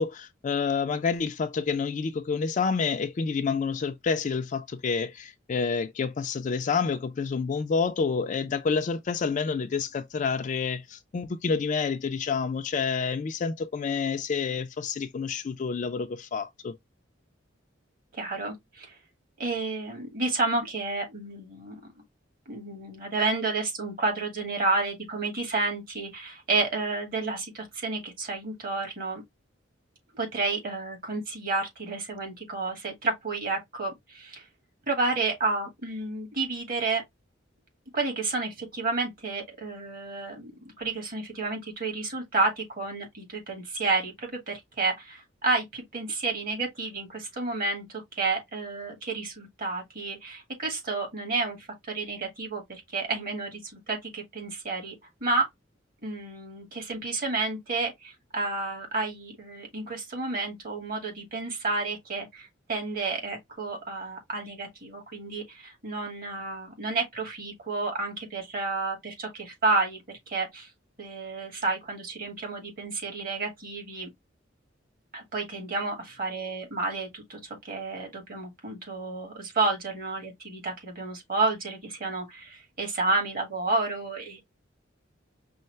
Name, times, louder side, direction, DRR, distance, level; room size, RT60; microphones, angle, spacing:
voice 1, 0.0-16.8, left 5 dB, 40° left, 0.4 m, -28 dB
voice 2, 18.1-19.0 19.4-21.7 22.5-29.2 30.1-34.4 34.9-37.0 37.9-40.5 40.8-47.8 48.1-54.9 55.2-55.4 56.0-70.7 71.0-74.1 75.1-84.4, right 3 dB, 50° right, 1.7 m, -30 dB
5.4 x 2.0 x 3.1 m
head